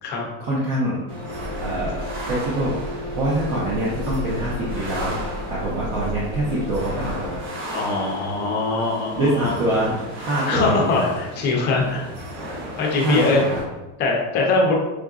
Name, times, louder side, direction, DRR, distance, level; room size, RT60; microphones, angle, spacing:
voice 1, 0.4-1.0 1.6-7.4 9.1-11.0 13.0-13.6, right 1 dB, 45° right, -6 dB, 0.7 m, -25 dB
sound 1, 1.1-13.6, equal, 70° right, 1.2 m, -33 dB
sound 2, 1.3-7.5, equal, 85° right, 0.6 m, -34 dB
voice 2, 7.7-9.5 10.5-12.1 12.8-13.4 14.0-14.8, left 3 dB, 30° left, -1 dB, 0.5 m, -22 dB
4.6 x 2.5 x 2.3 m, 1.1 s
cardioid pair, 175°, 38 cm